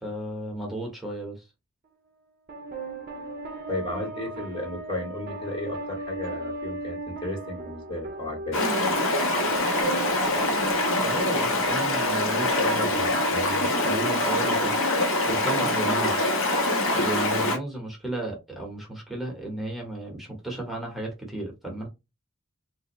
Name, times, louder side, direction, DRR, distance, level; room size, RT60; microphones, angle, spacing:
voice 1, 0.0-1.5 11.0-14.7 15.3-16.3 16.9-21.9, right 1 dB, ahead, 0.9 m, -34 dB
sound 1, 2.5-15.5, right 2 dB, 45° right, 0.6 m, -37 dB
voice 2, 3.7-8.6, left 2 dB, 25° left, 0.9 m, -34 dB
Stream, 8.5-17.6, left 1 dB, 70° left, 1.1 m, -24 dB
3.6 x 2.6 x 2.9 m
head